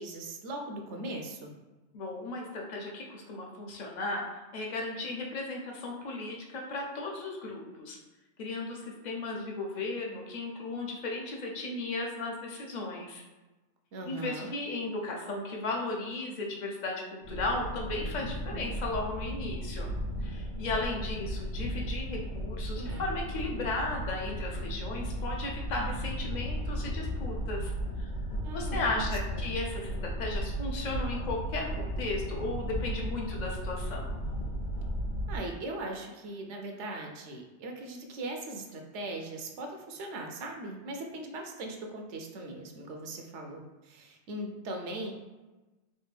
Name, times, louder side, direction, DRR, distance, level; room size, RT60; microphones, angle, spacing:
voice 1, 0.0-1.5 13.9-14.5 22.8-23.1 28.4-29.5 35.3-45.2, right 2 dB, 80° right, 3 dB, 0.9 m, -39 dB
voice 2, 1.9-4.3 4.5-8.0 8.4-13.2 14.0-19.9 20.2-27.7 28.0-28.1 28.5-34.1, left 2 dB, 50° left, 0 dB, 0.6 m, -35 dB
sound 1, 17.2-35.4, equal, 75° left, 1.2 m, -35 dB
3.3 x 2.5 x 3.3 m, 1.1 s
omnidirectional pair, 1.2 m